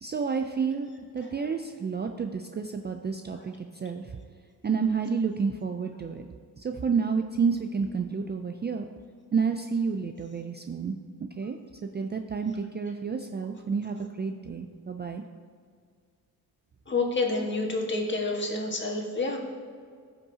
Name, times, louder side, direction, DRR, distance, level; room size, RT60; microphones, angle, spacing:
voice 1, 0.0-4.1 4.6-6.3 6.6-8.9 9.3-11.0 11.4-11.6 11.9-15.2, right 5 dB, 30° right, 5 dB, 0.4 m, -30 dB
voice 2, 16.9-19.4, left 3 dB, 30° left, 0 dB, 1.7 m, -28 dB
15.0 x 5.5 x 2.8 m, 2.1 s
cardioid pair, 85°, 38 cm